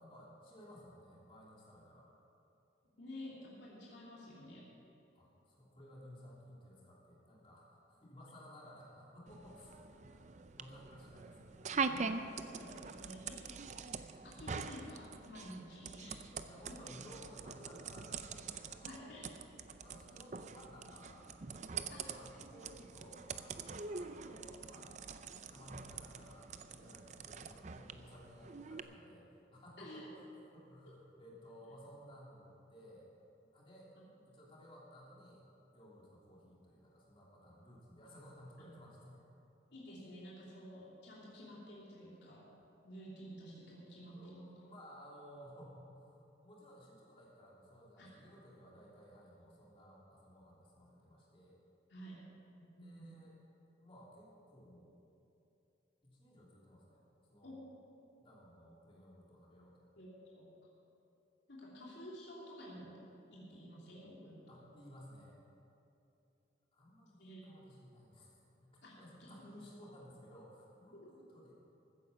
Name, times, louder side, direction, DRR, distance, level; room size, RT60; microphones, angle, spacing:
voice 1, 0.0-2.1 5.1-11.8 16.4-19.1 19.5-25.0 25.5-29.3 29.5-33.1 33.5-33.9 34.2-35.4 35.7-39.3 44.1-51.6 52.8-53.3 53.8-55.0 56.0-57.0 57.3-57.6 58.2-59.9 64.5-65.4 66.7-68.4 68.6-71.6, equal, 30° left, -5 dB, 3.1 m, -57 dB
voice 2, 3.0-4.6 11.8-13.5 14.2-16.2 16.7-16.8 18.8-19.3 21.9-22.0 29.8-30.1 38.6-38.7 39.7-42.4 42.8-44.4 48.0-48.1 51.9-52.2 52.5-53.1 57.4-57.6 60.0-60.4 61.5-63.0 63.3-64.6 67.2-67.4 68.8-69.6 70.9-71.1, equal, 70° left, -6 dB, 2.9 m, -51 dB
sound 1, 9.3-28.8, right 5 dB, 40° right, 0.5 m, -44 dB
15.0 x 9.6 x 6.8 m, 2.8 s
head